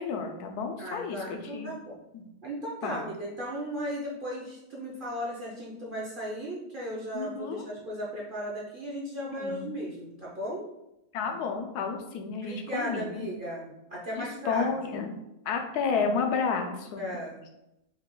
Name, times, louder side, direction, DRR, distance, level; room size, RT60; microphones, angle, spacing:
voice 1, 0.0-1.7 2.1-2.2 2.8-3.0 7.1-7.6 9.3-9.7 11.1-13.3 14.2-15.1 15.4-17.1, left 5 dB, 80° left, 4 dB, 1.2 m, -31 dB
voice 2, 0.8-2.0 2.4-10.7 12.4-15.0 17.0-17.4, equal, 45° right, -5 dB, 0.7 m, -36 dB
4.7 x 2.4 x 3.7 m, 0.88 s
omnidirectional pair, 1.7 m